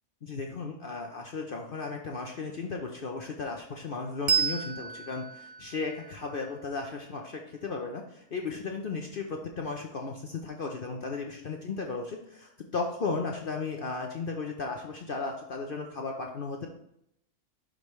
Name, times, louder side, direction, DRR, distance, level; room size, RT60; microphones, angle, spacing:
voice 1, 0.2-16.7, left 4 dB, 50° left, 2 dB, 0.8 m, -35 dB
Bell, 4.3-7.4, right 7 dB, 45° right, 0.7 m, -33 dB
11.5 x 5.1 x 3.1 m, 0.75 s
omnidirectional pair, 1.4 m